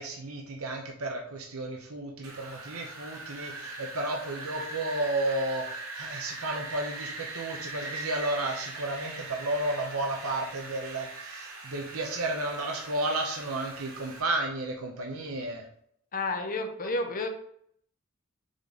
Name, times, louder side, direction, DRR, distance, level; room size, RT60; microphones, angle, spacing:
voice 1, 0.0-15.6, right 2 dB, 90° right, 1 dB, 0.9 m, -32 dB
Wind, 2.2-14.2, right 2 dB, 65° right, 1.5 m, -41 dB
voice 2, 16.1-17.3, left 2 dB, 40° left, 5 dB, 0.9 m, -30 dB
6.4 x 3.8 x 4.1 m, 0.66 s
head